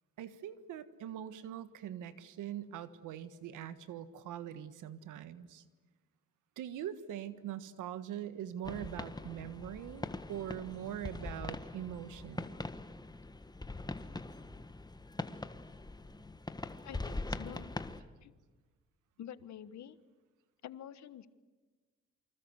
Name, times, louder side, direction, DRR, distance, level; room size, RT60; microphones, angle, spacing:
voice 1, 0.2-5.6 6.6-12.5, right 10 dB, 90° right, 13 dB, 1.6 m, -42 dB
fireworks small Montreal Canada, 8.6-18.0, left 2 dB, 15° left, 1.4 m, -42 dB
voice 2, 16.8-17.7 18.2-18.3 19.2-20.0 20.6-21.3, left 10 dB, 65° left, 14 dB, 1.4 m, -48 dB
28.5 x 25.5 x 8.1 m, 1.3 s
cardioid pair, 90°, 30 cm